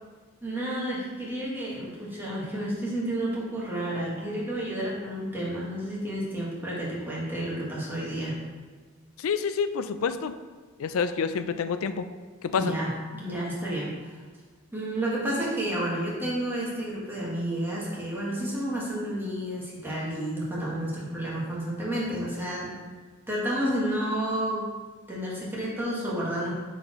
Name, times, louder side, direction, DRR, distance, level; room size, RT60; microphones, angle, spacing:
voice 1, 0.4-8.4 12.5-14.1 14.7-22.7 23.3-24.7 25.1-26.6, right 1 dB, 10° right, -6 dB, 1.6 m, -31 dB
voice 2, 9.2-10.3 10.8-12.1 12.4-12.7, left 6 dB, 85° left, 11 dB, 0.4 m, -28 dB
8.5 x 4.2 x 3.0 m, 1.4 s
head